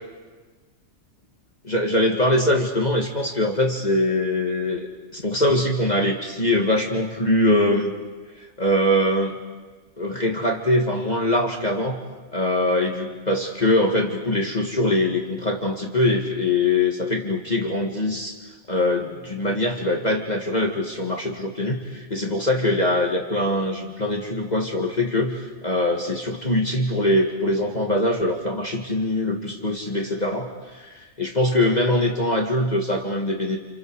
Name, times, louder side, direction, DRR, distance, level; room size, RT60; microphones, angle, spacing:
voice 1, 1.6-7.9 8.4-9.4 10.0-12.0 12.3-18.4 18.7-33.6, left 1 dB, 30° left, 1 dB, 2.1 m, -23 dB
30.0 x 29.0 x 4.9 m, 1.4 s
omnidirectional pair, 1.4 m